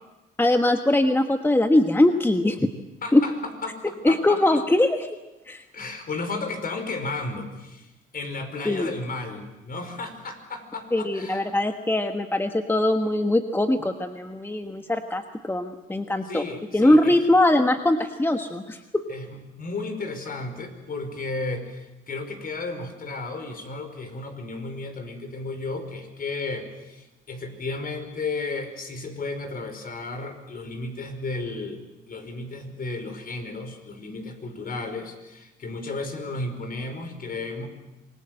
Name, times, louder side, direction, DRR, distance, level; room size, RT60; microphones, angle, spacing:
voice 1, 0.4-2.7 3.1-3.2 4.0-5.1 5.5-5.6 8.6-8.9 10.9-16.4 16.7-19.0, left 1 dB, 10° left, 6 dB, 1.3 m, -21 dB
voice 2, 3.0-3.3 3.6-4.4 5.7-11.4 16.2-17.2 19.1-31.8 32.1-37.7, left 3 dB, 45° left, 6 dB, 4.9 m, -33 dB
26.5 x 21.0 x 7.7 m, 0.99 s
cardioid pair, 90°, 20 cm